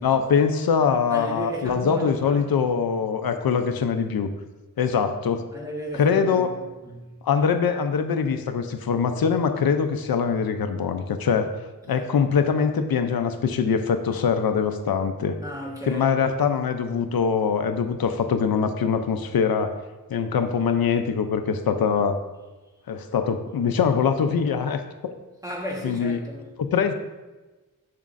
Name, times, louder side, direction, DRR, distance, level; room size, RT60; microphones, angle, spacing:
voice 1, 0.0-4.3 4.8-5.4 5.9-6.5 7.2-11.5 11.9-15.4 15.9-19.7 20.1-22.2 22.9-24.8 25.8-26.2 26.6-26.9, left 6 dB, 85° left, 0.6 m, -23 dB
voice 2, 1.1-2.4 5.5-7.2 15.4-16.1 25.4-26.5, equal, 10° right, 1.3 m, -35 dB
7.2 x 6.6 x 2.5 m
wide cardioid pair, 110°, 35 cm